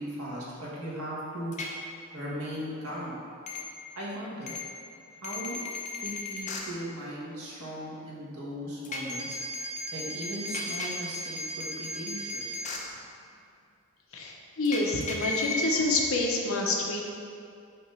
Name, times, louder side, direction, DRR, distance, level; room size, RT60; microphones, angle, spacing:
voice 1, 0.0-1.5 2.1-3.2 3.9-4.6 5.2-5.6 6.0-9.4 9.9-12.6, equal, 90° right, -6 dB, 1.4 m, -38 dB
sound 1, 1.5-1.7 3.5-3.6 4.5-4.6 5.2-6.6 8.8-12.8 14.7-15.8, left 2 dB, 35° left, 0.6 m, -34 dB
voice 2, 14.1-17.1, left 2 dB, 65° left, 0 dB, 0.8 m, -28 dB
5.9 x 2.9 x 5.5 m, 2.4 s
head